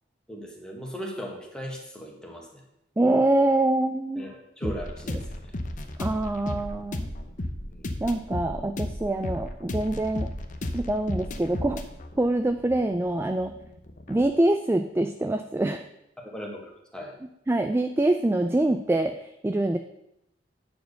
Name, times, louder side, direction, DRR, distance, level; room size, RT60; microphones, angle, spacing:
voice 1, 0.3-2.6 4.1-5.4 7.7-7.9 16.2-17.1, equal, 5° left, -1 dB, 1.6 m, -38 dB
voice 2, 3.0-4.3 4.6-4.7 5.1-5.2 6.0-7.1 8.0-10.3 10.7-11.8 12.2-13.5 14.1-15.9 17.5-19.1 19.4-19.8, right 1 dB, 15° right, 7 dB, 0.3 m, -25 dB
sound 1, 4.6-14.3, left 1 dB, 45° left, 0.8 m, -34 dB
9.2 x 4.4 x 6.6 m, 0.84 s
head